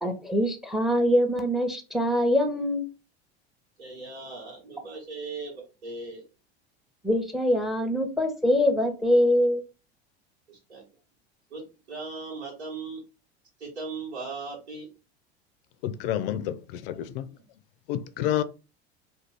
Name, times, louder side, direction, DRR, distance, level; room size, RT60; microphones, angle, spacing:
voice 1, 0.0-2.9 7.0-9.6, equal, ahead, 0.7 m, -24 dB
voice 2, 3.8-6.3 10.5-10.9 11.5-13.0 13.6-14.9 17.1-17.4 18.3-18.4, right 3 dB, 80° right, 1.3 m, -38 dB
voice 3, 15.8-16.6 16.9-17.3 17.9-18.4, left 11 dB, 60° left, 0.5 m, -28 dB
2.6 x 2.4 x 3.2 m
hypercardioid pair, 80°, 33 cm